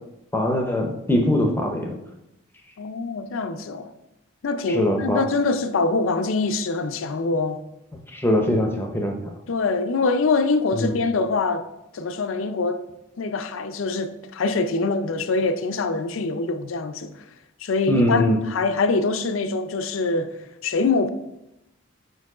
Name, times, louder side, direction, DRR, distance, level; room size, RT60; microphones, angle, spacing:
voice 1, 0.3-1.9 4.7-5.2 8.1-9.1 10.7-10.9 17.9-18.4, left 1 dB, 10° left, 0.6 m, -22 dB
voice 2, 2.8-3.9 4.4-7.6 9.5-11.6 11.9-12.8 13.2-17.2 17.6-20.3 20.6-21.1, left 3 dB, 75° left, 0.5 m, -24 dB
4.6 x 4.5 x 4.8 m
head